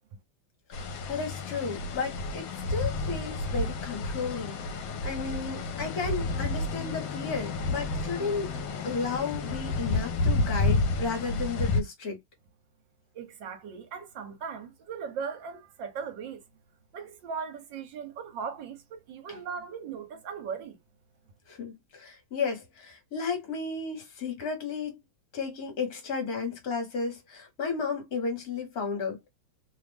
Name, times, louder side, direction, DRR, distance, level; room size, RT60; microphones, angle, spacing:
sound 1, 0.7-11.8, left 3 dB, 75° left, 1.4 m, -30 dB
voice 1, 1.1-8.5 8.8-12.2 19.3-19.4 21.5-25.0 25.3-29.3, left 5 dB, 50° left, 1.6 m, -33 dB
voice 2, 13.1-16.4 16.9-20.8, right 6 dB, 70° right, 1.5 m, -38 dB
3.4 x 2.4 x 3.4 m
omnidirectional pair, 2.2 m